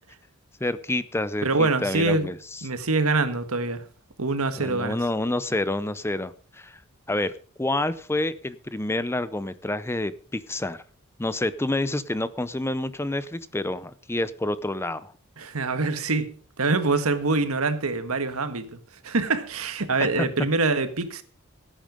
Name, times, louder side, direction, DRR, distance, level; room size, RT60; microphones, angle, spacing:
voice 1, 0.6-2.6 4.6-6.8 7.1-7.3 7.6-10.8 11.2-15.1 20.2-20.3, left 2 dB, 10° left, 0.6 m, -28 dB
voice 2, 1.4-2.3 2.6-3.8 4.2-5.0 15.4-21.2, right 3 dB, 85° right, 1.6 m, -25 dB
17.0 x 9.0 x 5.2 m
head